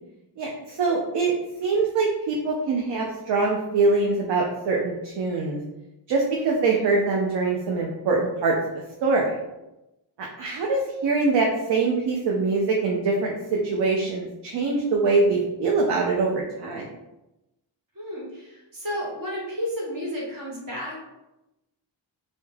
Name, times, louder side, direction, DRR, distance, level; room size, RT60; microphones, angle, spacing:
voice 1, 0.4-1.3 1.6-5.6 6.1-8.6 9.0-9.4 10.2-16.9, right 3 dB, 65° right, -2 dB, 0.5 m, -23 dB
voice 2, 17.9-21.0, equal, 45° right, -4 dB, 1.1 m, -32 dB
2.2 x 2.0 x 3.1 m, 0.96 s
cardioid pair, 75°, 45 cm